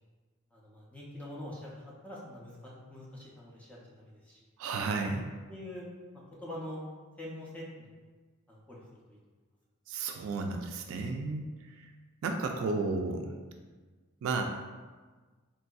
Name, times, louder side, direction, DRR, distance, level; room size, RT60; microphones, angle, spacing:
voice 1, 0.5-4.4 5.5-5.8 6.1-6.8 7.2-7.9 8.5-9.2, left 1 dB, 5° left, -6 dB, 0.5 m, -45 dB
voice 2, 4.6-5.2 9.9-11.5 11.8-11.9 12.2-13.4 14.2-14.4, right 3 dB, 70° right, 5 dB, 0.3 m, -32 dB
3.7 x 2.6 x 2.3 m, 1.4 s
head